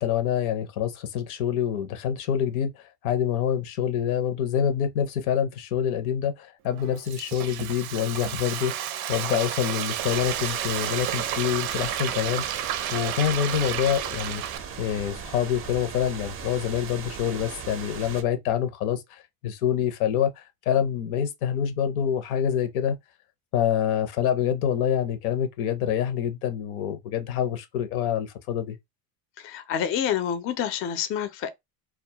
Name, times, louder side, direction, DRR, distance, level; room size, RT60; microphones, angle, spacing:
voice 1, 0.0-12.4 12.9-14.4 14.8-23.0 23.5-28.8, left 9 dB, 90° left, 0.7 m, -26 dB
Frying (food), 6.7-14.6, right 11 dB, 90° right, 0.5 m, -31 dB
sound 1, 10.0-18.2, right 6 dB, 30° right, 0.4 m, -39 dB
voice 2, 29.4-31.5, left 9 dB, 35° left, 0.4 m, -28 dB
2.2 x 2.0 x 2.7 m
supercardioid pair, 110°, 42 cm